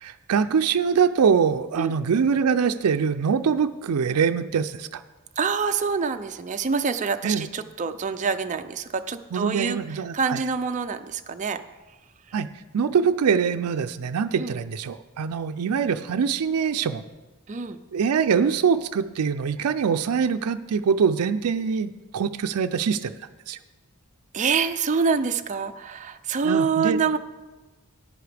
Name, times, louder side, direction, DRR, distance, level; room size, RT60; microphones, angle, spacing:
voice 1, 0.0-5.0 7.2-7.5 9.3-10.4 12.3-12.5 12.7-17.0 17.9-23.1 23.5-23.6 26.4-27.2, right 6 dB, 90° right, 9 dB, 0.4 m, -23 dB
voice 2, 5.4-11.6 14.4-14.6 17.5-17.8 24.3-27.2, right 5 dB, 35° right, 8 dB, 0.5 m, -26 dB
14.0 x 9.9 x 3.4 m, 1.2 s
head